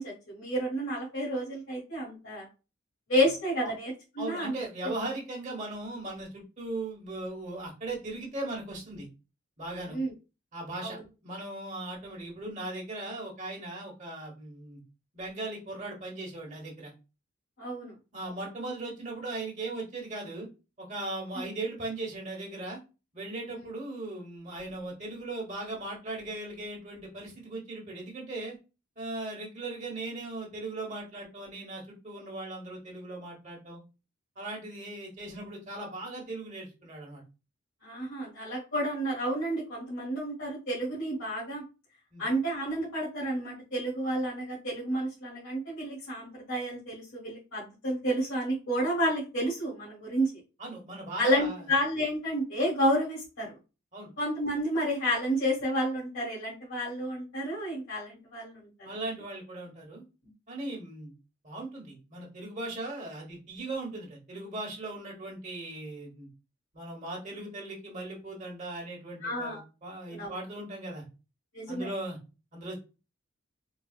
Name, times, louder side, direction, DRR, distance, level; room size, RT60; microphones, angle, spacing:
voice 1, 0.0-2.4 3.1-4.5 4.8-4.9 9.9-10.1 10.8-10.9 17.6-17.9 37.8-41.6 42.2-50.3 51.2-53.6 54.2-58.7 69.2-69.6 70.1-70.3 71.5-71.9, equal, 60° left, -8 dB, 1.5 m, -30 dB
voice 2, 4.2-9.1 9.6-10.0 10.5-11.0 11.2-14.8 15.1-16.9 18.1-20.5 20.8-22.8 23.1-28.6 29.0-33.8 34.4-37.2 42.1-42.2 50.6-51.7 53.9-54.1 58.8-60.0 60.5-61.1 61.4-66.3 66.7-71.0 71.7-72.2 72.5-72.8, right 2 dB, 35° right, -1 dB, 1.3 m, -38 dB
4.0 x 2.3 x 2.4 m, 0.30 s
head